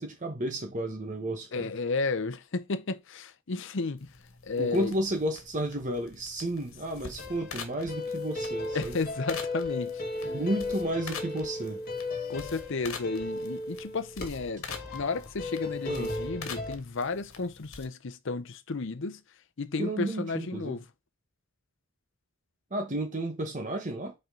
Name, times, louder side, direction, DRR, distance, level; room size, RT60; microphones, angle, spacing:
voice 1, 0.0-1.7 4.6-9.0 10.2-11.8 15.9-16.1 19.8-20.8 22.7-24.1, right 1 dB, 35° right, 1.0 m, -32 dB
voice 2, 1.5-4.1 4.4-4.9 8.7-10.3 12.3-19.2 19.6-20.9, left 3 dB, 60° left, 0.7 m, -33 dB
sound 1, 4.0-17.9, left 5 dB, 75° left, 1.5 m, -46 dB
sound 2, 7.2-16.8, left 2 dB, 45° left, 1.8 m, -36 dB
5.7 x 4.4 x 3.8 m
head